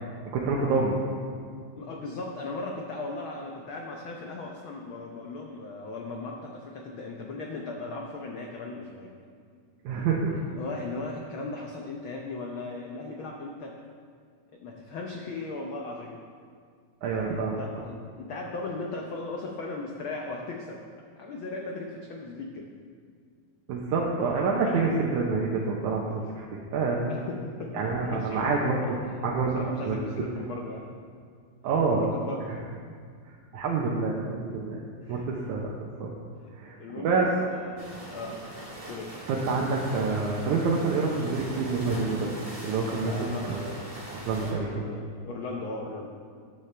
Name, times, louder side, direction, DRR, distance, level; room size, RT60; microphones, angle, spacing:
voice 1, 0.3-1.0 9.8-10.4 17.0-17.8 23.7-27.0 27.7-30.0 31.6-32.1 32.5-32.6 33.5-34.8 35.1-35.7 36.0-36.1 36.5-37.3 39.3-42.3 42.6-43.1 43.5-43.7 44.1-44.8, right 4 dB, 85° right, -3 dB, 2.4 m, -27 dB
voice 2, 1.8-9.1 10.3-13.8 14.5-16.2 17.1-20.8 21.2-22.7 27.1-28.5 29.1-29.2 29.5-30.8 31.7-32.5 35.0-35.3 36.4-36.5 36.8-37.8 38.1-38.4 38.9-39.1 43.1-43.5 44.4-46.1, left 3 dB, 90° left, 1 dB, 1.1 m, -37 dB
sound 1, 37.8-44.5, right 1 dB, 20° right, 0.9 m, -40 dB
14.0 x 9.9 x 3.3 m, 2.1 s
omnidirectional pair, 3.4 m